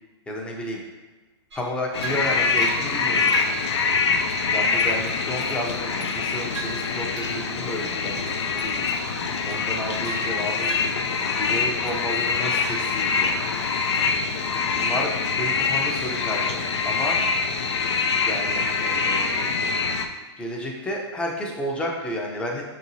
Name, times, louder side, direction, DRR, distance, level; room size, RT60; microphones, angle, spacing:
voice 1, 0.3-0.8 1.5-3.3 4.5-8.9 9.5-10.8 11.4-13.4 14.6-15.1 15.4-17.2 18.2-19.6 20.4-22.6, equal, 5° left, -1 dB, 0.6 m, -32 dB
sound 1, 1.5-4.3 4.8-7.4 7.7-8.0 8.3-11.5 11.8-12.3, right 2 dB, 80° right, 1.1 m, -39 dB
sound 2, 1.9-20.1, left 5 dB, 80° left, 0.5 m, -24 dB
5.2 x 2.9 x 2.7 m, 1.2 s
hypercardioid pair, 125°, 14 cm